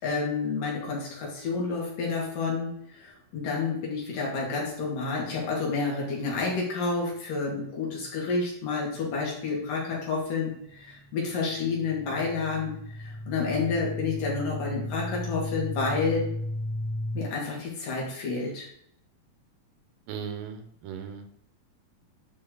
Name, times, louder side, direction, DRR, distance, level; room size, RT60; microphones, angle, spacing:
voice 1, 0.0-16.3 17.1-18.7, left 4 dB, 70° left, -2 dB, 4.0 m, -30 dB
sound 1, 10.8-10.9 11.1-17.2, left 1 dB, 70° right, 1.8 m, -35 dB
voice 2, 20.1-21.3, right 7 dB, 85° right, 7 dB, 2.7 m, -37 dB
10.5 x 4.9 x 4.0 m, 0.71 s
omnidirectional pair, 3.9 m